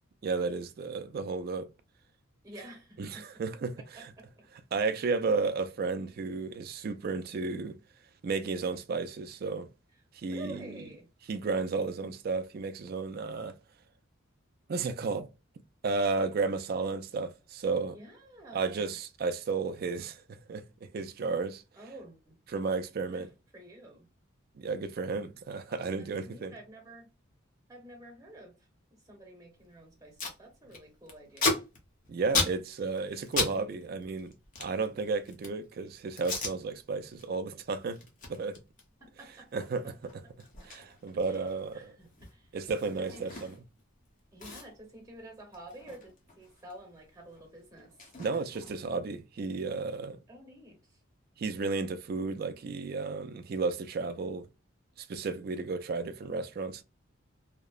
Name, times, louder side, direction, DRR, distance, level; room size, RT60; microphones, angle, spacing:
voice 1, 0.2-1.7 3.0-3.8 4.7-7.8 8.2-9.7 10.1-10.8 11.3-13.6 14.7-15.3 15.8-18.0 18.5-21.6 22.5-23.3 24.6-26.5 32.1-34.3 34.6-38.0 38.3-38.6 39.5-39.9 40.6-41.9 42.5-43.5 48.2-50.2 51.4-54.5 55.0-56.8, right 4 dB, 45° right, 0.3 m, -33 dB
voice 2, 2.4-3.2 3.8-4.5 10.2-11.1 17.9-19.0 21.7-22.4 23.1-23.3 23.5-24.1 25.7-27.1 27.7-28.6 28.9-31.7 39.0-39.5 39.8-39.9 40.6-40.7 41.3-42.5 43.0-43.2 44.3-47.9 50.3-51.0, right 1 dB, 15° right, 1.0 m, -50 dB
Packing tape duct tape, 29.6-29.7 29.9-30.4 30.7-33.6 33.8-35.6 36.2-36.6 37.0-37.2 37.6-43.8 44.1-44.2 44.4-46.8 47.0-49.0, left 3 dB, 40° left, 0.7 m, -36 dB
2.8 x 2.0 x 2.3 m
head